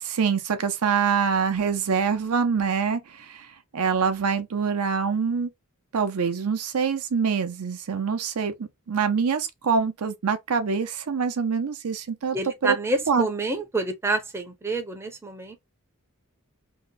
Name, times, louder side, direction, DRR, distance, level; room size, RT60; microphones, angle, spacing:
voice 1, 0.0-3.5 3.7-5.5 5.9-12.4 12.6-12.8 13.1-13.3, right 6 dB, 80° right, 0.6 m, -25 dB
voice 2, 12.3-15.6, right 2 dB, 10° right, 0.5 m, -28 dB
2.7 x 2.1 x 3.8 m
head